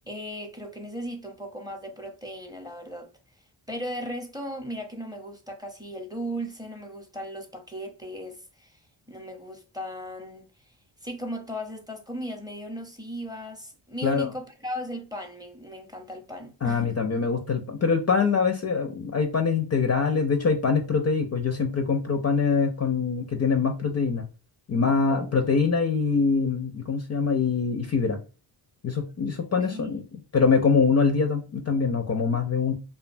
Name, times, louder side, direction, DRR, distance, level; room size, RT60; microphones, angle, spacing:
voice 1, 0.1-3.1 3.7-8.7 9.1-10.5 11.0-17.0 25.1-25.2 29.7-30.0, equal, 10° right, 0.5 m, -37 dB
voice 2, 16.6-24.3 24.7-28.2 28.8-30.0 30.3-32.7, left 5 dB, 40° left, 0.4 m, -24 dB
2.6 x 2.2 x 2.5 m
cardioid pair, 60°, 44 cm